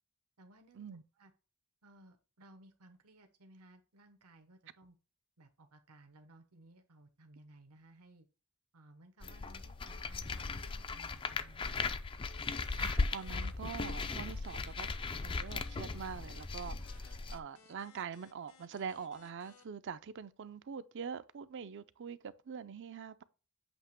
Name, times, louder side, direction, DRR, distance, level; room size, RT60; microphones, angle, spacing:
voice 1, 0.4-0.9 1.2-1.3 1.8-5.0 5.4-8.3 8.7-11.7, right 1 dB, 85° right, 1.1 m, -60 dB
sound 1, 9.2-17.4, left 4 dB, 25° left, 0.3 m, -38 dB
sound 2, 12.4-19.6, left 6 dB, 80° left, 1.1 m, -63 dB
voice 2, 12.7-14.9 15.2-23.2, right 6 dB, 55° right, 0.4 m, -44 dB
8.0 x 2.9 x 5.9 m
head